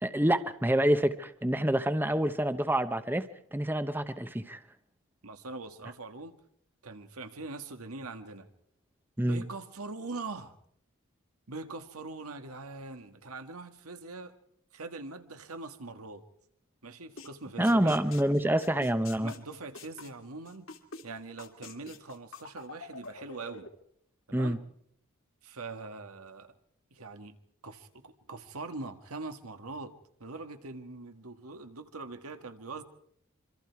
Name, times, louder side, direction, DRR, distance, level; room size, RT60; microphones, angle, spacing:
voice 1, 0.0-4.6 9.2-9.4 17.6-19.3 24.3-24.6, right 1 dB, 10° right, 11 dB, 0.8 m, -27 dB
voice 2, 5.2-6.3 6.8-8.5 9.2-10.5 11.5-14.3 14.7-16.2 16.8-18.0 19.2-20.7 21.0-23.7 24.3-24.6 25.4-26.5 26.9-27.4 27.6-29.9 30.2-32.8, right 3 dB, 90° right, 8 dB, 1.8 m, -42 dB
sound 1, 17.2-17.3 17.6-21.0 21.4-23.7, left 4 dB, 65° left, 2.3 m, -46 dB
26.0 x 24.5 x 4.7 m, 0.68 s
head